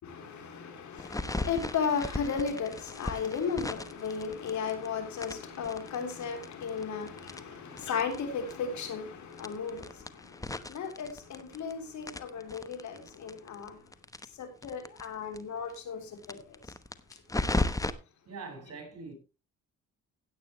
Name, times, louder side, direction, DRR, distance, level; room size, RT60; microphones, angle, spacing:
voice 1, 0.0-13.8 14.2-16.7 17.1-17.2, left 6 dB, 70° left, 3.6 m, -35 dB
sound 1, 1.0-4.9 5.2-8.2 8.5-8.6 8.8-8.9 9.3-11.7 12.0-15.0 15.3-15.4 15.7-15.8 16.2-17.9, left 2 dB, 10° left, 0.9 m, -35 dB
voice 2, 18.3-19.1, right 4 dB, 55° right, 5.3 m, -43 dB
16.0 x 8.5 x 3.1 m
cardioid pair, 90°, 30 cm